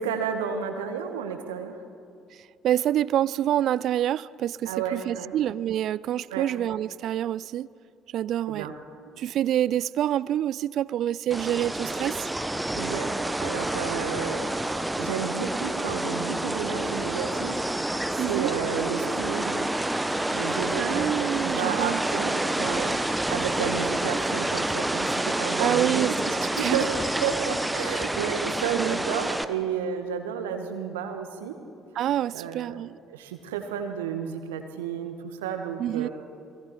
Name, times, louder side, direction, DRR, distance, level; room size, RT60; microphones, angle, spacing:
voice 1, 0.0-1.8 4.7-5.3 6.3-6.5 8.5-8.7 12.7-17.6 18.3-19.6 20.3-26.1 26.6-26.9 27.2-31.6 32.3-32.8 33.1-36.1, right 8 dB, 75° right, 6 dB, 1.8 m, -32 dB
voice 2, 2.6-7.7 8.1-8.7 9.2-12.3 18.2-18.5 20.8-22.0 22.8-23.0 25.6-26.8 28.7-29.0 32.0-33.0 35.8-36.1, right 11 dB, 55° right, 21 dB, 0.4 m, -27 dB
sound 1, 11.3-29.4, right 1 dB, 10° right, 1.1 m, -28 dB
29.5 x 21.5 x 4.6 m, 2.5 s
figure-of-eight pair, 50°, 0 cm